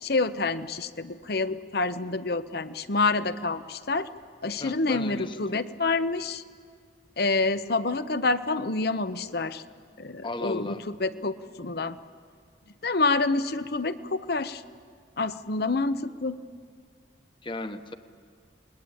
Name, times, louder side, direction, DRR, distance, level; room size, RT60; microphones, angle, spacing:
voice 1, 0.0-4.1 4.4-6.4 7.2-9.6 10.0-12.0 12.8-14.6 15.2-16.4, left 3 dB, 55° left, 12 dB, 0.9 m, -27 dB
voice 2, 4.6-5.6 10.2-10.8 17.4-17.9, left 2 dB, 25° left, 9 dB, 1.0 m, -36 dB
28.0 x 21.5 x 8.9 m, 2.1 s
head